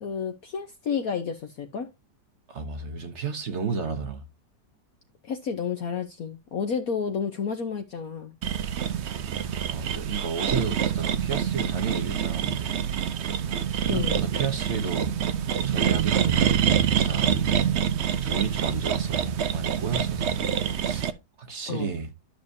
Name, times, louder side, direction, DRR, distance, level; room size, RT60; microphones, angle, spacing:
voice 1, 0.0-1.9 5.2-8.3 13.9-14.2 21.7-22.0, left 6 dB, 60° left, 1.2 m, -31 dB
voice 2, 2.5-4.2 9.7-12.8 13.7-15.1 15.6-22.1, right 5 dB, 45° right, 1.1 m, -32 dB
sound 1, 8.4-21.1, right 8 dB, 75° right, 0.6 m, -26 dB
12.0 x 6.6 x 2.7 m
omnidirectional pair, 1.9 m